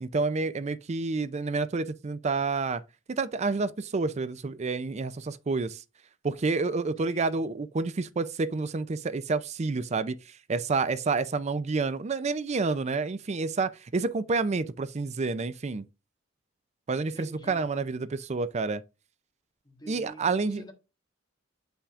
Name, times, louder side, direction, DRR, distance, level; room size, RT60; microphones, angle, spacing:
voice 1, 0.0-2.8 3.1-5.8 6.2-15.9 16.9-18.8 19.9-20.6, right 4 dB, 35° right, 0.4 m, -29 dB
voice 2, 7.0-7.4 17.1-17.7 19.6-20.7, equal, 20° left, 1.6 m, -47 dB
8.2 x 5.7 x 2.5 m
head